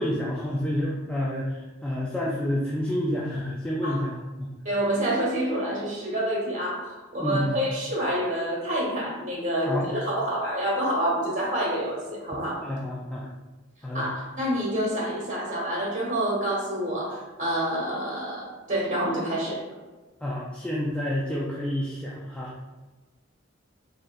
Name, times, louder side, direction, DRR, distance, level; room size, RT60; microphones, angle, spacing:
voice 1, 0.0-4.5 7.2-7.6 9.7-9.9 12.6-13.3 13.8-14.1 20.2-22.5, left 1 dB, 5° left, -5 dB, 0.4 m, -29 dB
voice 2, 4.6-12.6 13.9-19.6, right 1 dB, 40° right, -4 dB, 1.4 m, -28 dB
4.2 x 3.7 x 2.4 m, 1.2 s
head